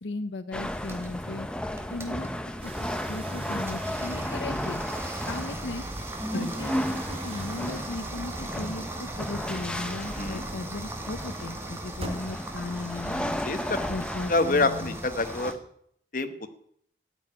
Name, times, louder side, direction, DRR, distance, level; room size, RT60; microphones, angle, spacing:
voice 1, 0.0-1.5 1.9-2.3 2.6-2.7 3.1-4.8 5.3-5.8 6.3-13.4 13.9-15.0, left 2 dB, 85° left, 12 dB, 0.7 m, -37 dB
sound 1, 0.5-15.5, equal, 5° left, 0.6 m, -35 dB
sound 2, 0.6-15.5, right 1 dB, 15° right, 1.9 m, -39 dB
sound 3, 2.6-15.0, right 1 dB, 30° right, 1.3 m, -45 dB
voice 2, 13.4-13.8 14.3-15.5 16.1-16.5, left 2 dB, 50° left, 8 dB, 1.2 m, -26 dB
14.0 x 7.0 x 9.8 m, 0.68 s
head